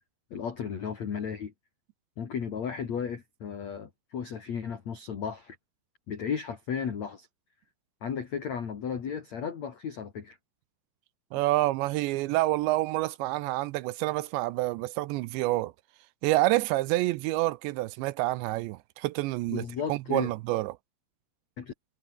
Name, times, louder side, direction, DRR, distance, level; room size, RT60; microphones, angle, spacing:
voice 1, 0.3-1.5 2.2-5.6 6.1-7.3 8.0-10.4 19.5-20.3 21.6-21.7, left 7 dB, 45° left, 2.9 m, -34 dB
voice 2, 11.3-15.7 16.2-19.6 19.9-20.7, right 18 dB, 80° right, 2.6 m, -28 dB
omnidirectional pair, 5.8 m